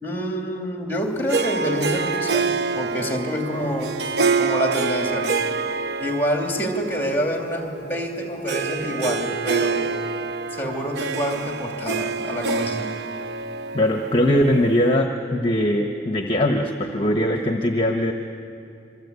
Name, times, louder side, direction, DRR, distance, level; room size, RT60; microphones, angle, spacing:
voice 1, 0.0-4.0 4.4-5.4 6.0-10.1 10.5-12.9, equal, 10° left, 2 dB, 2.9 m, -27 dB
Harp, 1.3-14.9, right 4 dB, 75° right, 0.8 m, -27 dB
voice 2, 13.7-18.1, equal, 30° left, 3 dB, 1.2 m, -21 dB
27.0 x 23.5 x 8.4 m, 2.7 s
head